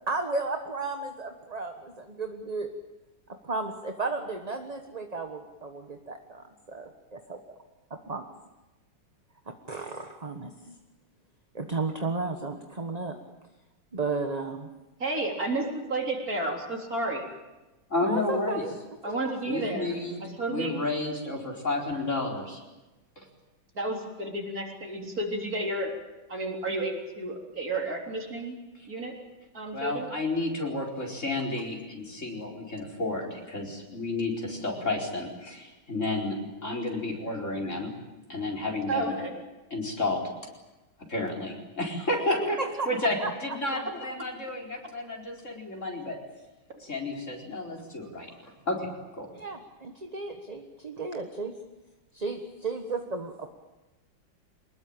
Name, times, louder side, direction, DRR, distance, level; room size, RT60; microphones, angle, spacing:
voice 1, 0.1-2.7 3.4-7.4 8.1-8.3 9.5-10.8 11.5-13.2 13.9-14.7 18.0-18.7 19.0-19.1 42.6-42.9 43.2-43.3 49.3-51.5 52.1-53.5, right 3 dB, 20° right, 5 dB, 1.2 m, -34 dB
voice 2, 15.0-17.2 19.0-19.9 20.4-20.7 23.7-25.9 26.3-28.6 28.9-29.1 29.5-30.1 38.9-39.3, right 2 dB, 40° right, 1 dB, 4.1 m, -31 dB
voice 3, 17.9-18.6 19.5-20.2 20.5-22.6 29.7-36.4 36.6-37.9 38.3-39.2 39.7-40.3 41.1-42.6 42.9-43.2 43.4-46.2 46.8-49.3, left 2 dB, 35° left, 2 dB, 4.9 m, -31 dB
24.5 x 21.0 x 8.9 m, 1.1 s
omnidirectional pair, 2.3 m